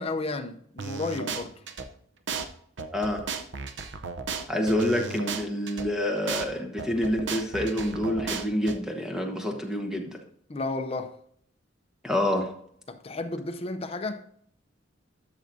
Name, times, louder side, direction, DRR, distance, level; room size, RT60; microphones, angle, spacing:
voice 1, 0.0-1.5 10.5-11.2 12.9-14.3, left 2 dB, 30° left, 0.7 m, -32 dB
sound 1, 0.8-1.9 2.3-2.5 2.8-5.9 6.3-6.5 6.8-8.8, right 5 dB, 65° right, 0.7 m, -34 dB
voice 2, 2.9-3.2 4.5-10.2 12.0-12.5, left 1 dB, 5° right, 1.3 m, -27 dB
13.0 x 6.1 x 2.7 m
head